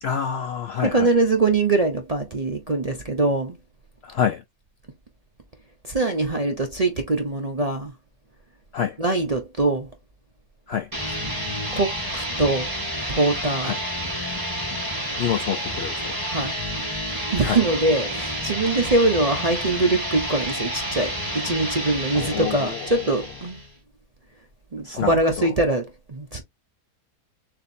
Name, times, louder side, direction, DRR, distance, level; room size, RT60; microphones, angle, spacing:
voice 1, 0.0-1.1 4.0-4.4 8.7-9.0 10.7-10.9 13.6-13.8 15.2-16.2 17.4-17.6 22.1-22.9 24.8-25.1 25.4-25.5, left 8 dB, 85° left, 0.5 m, -27 dB
voice 2, 0.8-3.6 5.8-7.9 9.0-9.9 11.2-11.3 11.7-12.7 13.1-13.7 16.3-16.6 17.3-23.6 24.7-26.4, right 2 dB, 45° right, 0.5 m, -23 dB
sound 1, 10.9-23.8, equal, 15° right, 2.5 m, -30 dB
6.8 x 2.8 x 2.7 m
omnidirectional pair, 1.7 m